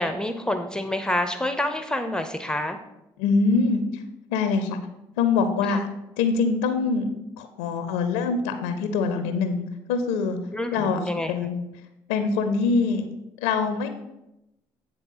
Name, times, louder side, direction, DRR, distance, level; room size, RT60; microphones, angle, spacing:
voice 1, 0.0-2.8 5.7-5.8 10.5-11.3, left 1 dB, 5° left, 8 dB, 0.7 m, -27 dB
voice 2, 3.2-4.0 4.3-4.8 5.2-5.9 6.2-7.1 7.4-10.4 10.7-11.0 11.3-11.6 12.1-13.1 13.4-13.9, left 4 dB, 85° left, 8 dB, 0.6 m, -24 dB
9.1 x 3.4 x 5.5 m, 0.89 s
hypercardioid pair, 50°, 12 cm